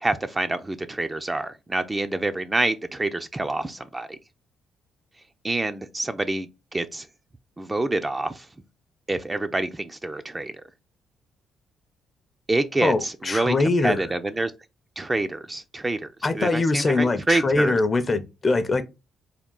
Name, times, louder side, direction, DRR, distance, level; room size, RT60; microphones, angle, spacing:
voice 1, 0.0-4.2 5.4-7.1 7.6-8.5 9.1-10.6 12.5-14.5 15.0-16.1 16.3-17.8, right 2 dB, 20° right, 0.4 m, -27 dB
voice 2, 12.8-14.0 16.2-18.8, left 3 dB, 30° left, 0.5 m, -22 dB
3.5 x 2.3 x 3.7 m
cardioid pair, 90°, 0 cm